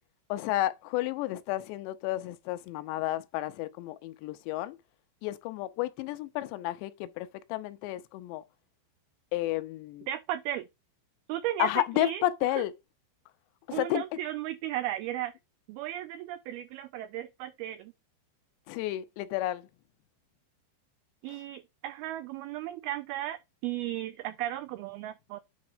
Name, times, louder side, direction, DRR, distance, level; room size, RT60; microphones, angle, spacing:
voice 1, 0.3-4.8 5.2-8.4 9.3-10.1 11.6-12.7 13.7-14.0 18.7-19.7, left 15 dB, 80° left, 2.9 m, -31 dB
voice 2, 10.1-10.7 11.3-12.2 12.6-12.7 13.7-15.3 15.7-17.9 21.2-25.4, right 13 dB, 85° right, 2.2 m, -35 dB
9.6 x 4.1 x 5.0 m
omnidirectional pair, 5.1 m